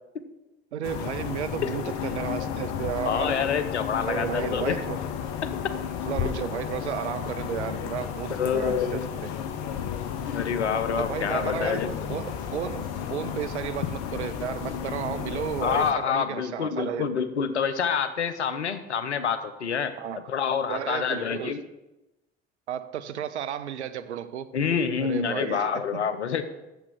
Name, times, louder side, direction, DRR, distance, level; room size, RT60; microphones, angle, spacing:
voice 1, 0.7-3.4 4.0-5.0 6.1-9.3 11.0-17.1 20.0-20.3 20.7-21.6 22.7-24.5 25.0-26.1, right 9 dB, 85° right, 0.6 m, -33 dB
sound 1, 0.8-15.9, left 8 dB, 60° left, 1.0 m, -33 dB
voice 2, 3.1-4.8 5.4-5.7 8.4-9.1 10.3-11.9 15.6-19.9 20.3-21.6 24.5-26.4, left 7 dB, 90° left, 0.7 m, -27 dB
8.9 x 7.2 x 5.9 m
figure-of-eight pair, 60°, 33 cm